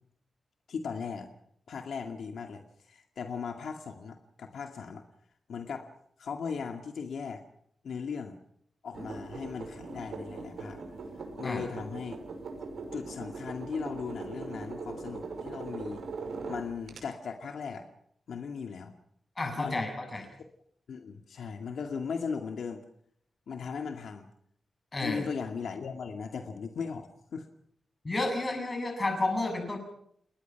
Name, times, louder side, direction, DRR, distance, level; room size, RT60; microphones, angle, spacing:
voice 1, 0.7-1.3 1.7-5.0 5.5-5.9 6.2-7.4 7.8-8.4 8.8-10.8 11.4-12.2 12.9-16.1 16.4-17.8 18.3-18.9 19.6-19.8 20.9-22.8 23.5-24.3 25.0-27.5, left 5 dB, 75° left, 4 dB, 2.1 m, -37 dB
sound 1, 8.9-17.0, right 3 dB, 75° right, 6.0 m, -40 dB
voice 2, 19.4-20.3 24.9-25.3 28.0-29.8, left 2 dB, 25° left, 4 dB, 7.4 m, -31 dB
29.0 x 20.5 x 5.9 m, 0.70 s
wide cardioid pair, 150°, 0 cm